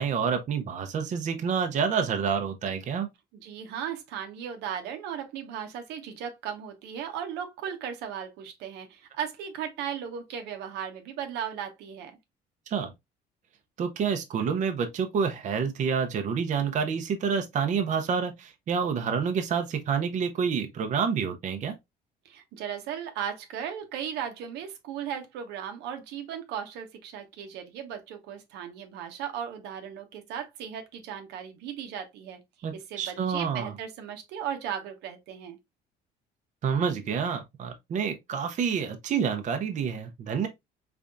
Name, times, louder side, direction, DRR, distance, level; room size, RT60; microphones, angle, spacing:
voice 1, 0.0-3.1 12.7-12.9 13.8-21.7 32.6-33.7 36.6-40.5, right 6 dB, 45° right, 0.7 m, -28 dB
voice 2, 3.4-12.1 22.2-32.4 32.7-35.6, right 8 dB, 90° right, 0.9 m, -36 dB
3.8 x 3.4 x 2.4 m
cardioid pair, 110°, 17 cm